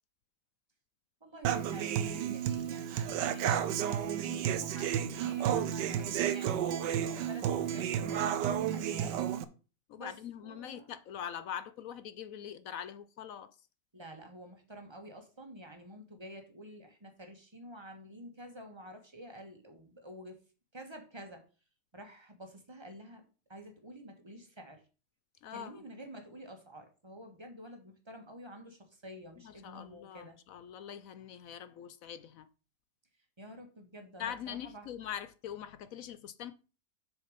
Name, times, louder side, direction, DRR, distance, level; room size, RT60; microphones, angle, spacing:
voice 1, 1.2-9.2 10.0-10.1 10.4-10.9 13.9-20.4 20.7-21.5 21.9-23.2 23.5-24.8 25.5-30.4 33.4-34.9, equal, 15° right, 1.5 m, -49 dB
Human voice / Acoustic guitar, 1.4-9.4, right 9 dB, 80° right, 1.3 m, -32 dB
voice 2, 9.9-13.5 25.4-25.8 29.4-32.5 34.2-36.5, left 9 dB, 70° left, 0.8 m, -43 dB
7.1 x 6.3 x 5.1 m
omnidirectional pair, 1.9 m